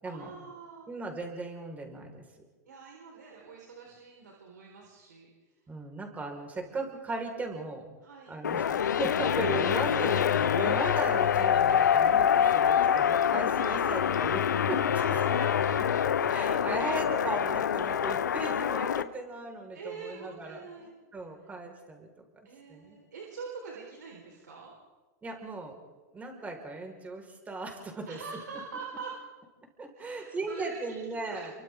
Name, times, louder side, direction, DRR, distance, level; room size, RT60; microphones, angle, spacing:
voice 1, 0.0-0.9 2.7-5.3 8.0-8.3 14.9-15.7 19.7-20.9 22.4-24.7 28.1-29.2 29.9-31.0 31.3-31.6, right 5 dB, 90° right, -1 dB, 4.3 m, -44 dB
voice 2, 0.9-2.2 5.7-7.8 8.3-15.4 16.2-22.1 22.7-23.0 25.2-25.8 26.1-28.2 29.8-31.5, right 2 dB, 15° right, 2 dB, 4.7 m, -37 dB
sound 1, 8.4-19.0, left 8 dB, 90° left, 0.8 m, -26 dB
30.0 x 24.0 x 3.7 m, 1.3 s
hypercardioid pair, 120°, 9 cm